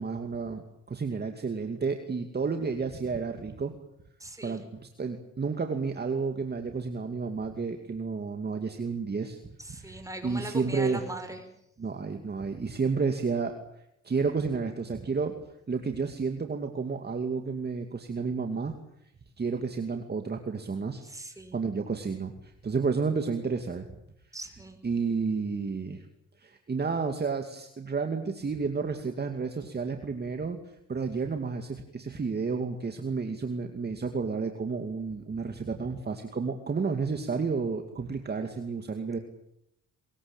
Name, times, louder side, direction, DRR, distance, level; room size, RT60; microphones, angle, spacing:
voice 1, 0.0-3.7 4.4-9.4 9.8-10.0 10.2-11.0 11.8-13.6 14.0-15.3 15.7-18.8 19.4-21.0 21.5-23.9 24.8-26.0 26.4-30.6 30.9-39.2, right 5 dB, 35° right, 5 dB, 2.5 m, -31 dB
voice 2, 4.2-4.6 9.6-11.4 21.0-21.6 24.3-24.8, right 2 dB, 10° right, 6 dB, 5.8 m, -40 dB
24.0 x 22.0 x 9.0 m, 0.78 s
cardioid pair, 90°, 30 cm